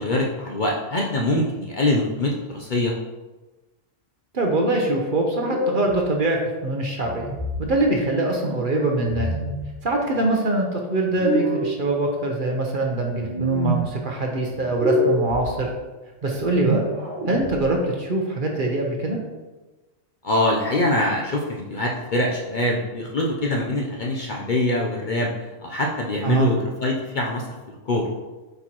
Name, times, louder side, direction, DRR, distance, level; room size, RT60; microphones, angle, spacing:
voice 1, 0.0-2.9 20.2-25.3 25.6-27.5 27.8-28.0, left 1 dB, 45° left, -1 dB, 0.7 m, -23 dB
voice 2, 4.3-7.3 7.6-9.3 9.8-15.7 16.2-16.8 17.3-19.2 26.2-26.5, right 2 dB, 45° right, 0 dB, 1.0 m, -23 dB
sound 1, 5.4-6.0 7.0-7.7 9.0-9.7 11.1-11.8 13.1-13.8 14.6-15.4 16.4-17.6, equal, 15° right, 1.4 m, -26 dB
7.9 x 4.6 x 3.0 m, 1.2 s
omnidirectional pair, 1.3 m